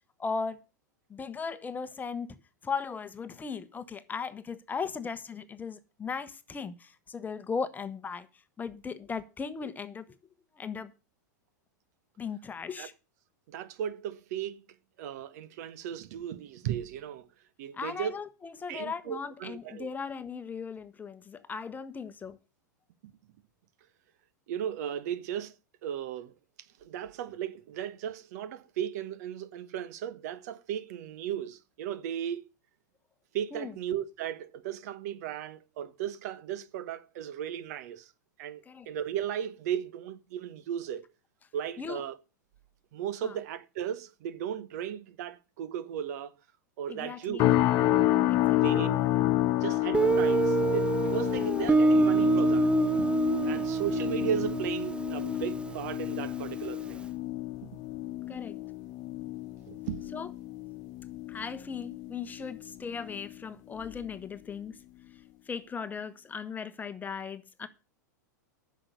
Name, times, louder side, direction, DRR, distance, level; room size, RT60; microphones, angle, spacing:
voice 1, 0.2-0.6 1.1-2.4 2.6-8.3 8.6-10.1 10.6-10.9 12.2-12.9 17.7-22.4 33.5-33.7 38.7-38.9 41.8-42.0 43.2-43.4 46.9-47.5 48.3-48.9 51.4-51.5 53.4-53.7 58.3-58.6 60.1-60.3 61.3-64.8 65.5-67.7, left 5 dB, 15° left, 1.0 m, -37 dB
voice 2, 13.5-14.6 15.0-17.3 17.6-18.1 18.7-19.9 23.0-23.1 24.5-25.5 25.8-26.3 26.8-32.4 33.3-38.1 38.4-41.1 41.5-42.2 42.9-46.3 46.8-47.4 48.6-49.0 49.6-52.7 53.0-53.1 53.4-57.0 57.6-57.8 59.7-60.0, right 9 dB, 60° right, 1.0 m, -36 dB
sound 1, 47.4-62.6 62.9-63.3 63.8-64.0, left 15 dB, 40° left, 1.1 m, -30 dB
Guitar, 49.9-56.6, right 3 dB, 10° right, 0.5 m, -27 dB
10.0 x 6.4 x 7.9 m
hypercardioid pair, 100°, 10 cm